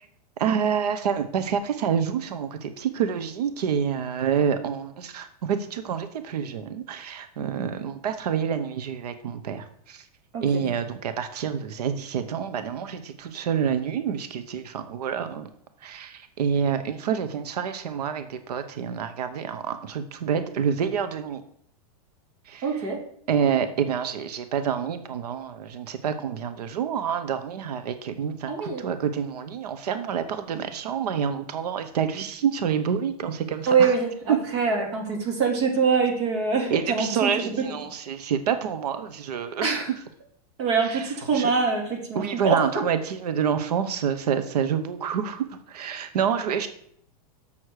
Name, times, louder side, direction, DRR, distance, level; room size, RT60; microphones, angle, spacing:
voice 1, 0.4-10.0 10.4-15.5 15.8-21.4 22.5-22.7 23.3-33.9 34.3-34.4 36.7-39.7 40.9-41.1 41.3-41.5 42.1-46.7, right 7 dB, 80° right, 10 dB, 0.9 m, -27 dB
voice 2, 22.6-23.0 28.5-28.8 33.7-37.5 39.6-39.9 40.6-42.6, right 5 dB, 45° right, 1 dB, 2.4 m, -24 dB
7.2 x 6.5 x 4.7 m, 0.66 s
supercardioid pair, 175°, 20 cm